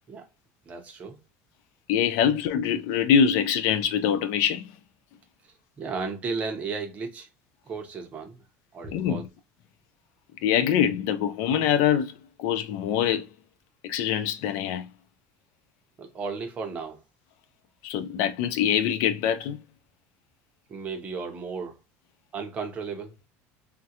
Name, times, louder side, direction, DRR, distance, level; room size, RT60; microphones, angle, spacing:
voice 1, 0.7-1.2 5.8-7.3 7.7-8.4 8.7-9.3 16.0-17.0 20.7-21.8 22.3-23.2, right 4 dB, 25° right, 0.7 m, -34 dB
voice 2, 1.9-4.6 8.9-9.2 10.4-12.1 12.4-13.3 13.8-14.9 17.8-19.6, left 8 dB, 65° left, 0.4 m, -24 dB
3.6 x 2.1 x 2.8 m
cardioid pair, 175°, 6 cm